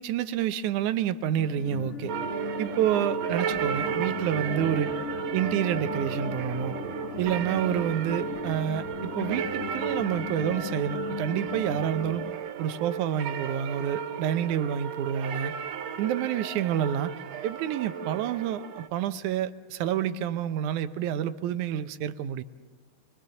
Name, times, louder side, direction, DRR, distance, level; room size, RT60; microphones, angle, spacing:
voice 1, 0.0-2.1 2.6-4.9 5.3-6.8 7.2-12.3 12.6-15.5 16.0-17.2 17.4-22.4, right 10 dB, 80° right, 12 dB, 2.3 m, -28 dB
sound 1, 1.4-12.3, left 7 dB, 80° left, 0.6 m, -38 dB
sound 2, 2.1-18.9, right 7 dB, 65° right, 2.3 m, -34 dB
25.5 x 23.0 x 7.0 m, 1.4 s
omnidirectional pair, 3.5 m